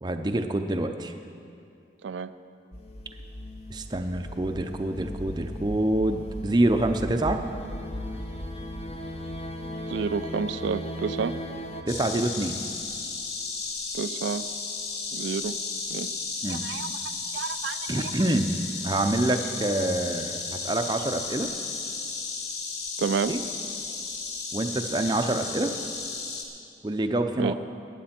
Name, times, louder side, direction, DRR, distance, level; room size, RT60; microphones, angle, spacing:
voice 1, 0.0-1.1 3.7-7.4 11.9-12.6 16.4-16.6 17.9-18.5 18.8-21.5 23.3-23.4 24.5-25.7 26.8-27.5, right 1 dB, 25° right, 6 dB, 0.5 m, -26 dB
sound 1, 2.7-11.8, left 1 dB, 35° left, 0.9 m, -36 dB
voice 2, 9.9-11.4 13.9-14.5 15.1-15.6 15.9-16.1 16.5-16.9 17.2-18.1 23.0-23.3 27.4-27.5, right 5 dB, 90° right, 12 dB, 0.4 m, -30 dB
Insect, 11.9-26.4, left 4 dB, 65° left, 1.3 m, -34 dB
19.0 x 9.1 x 4.4 m, 2.5 s
head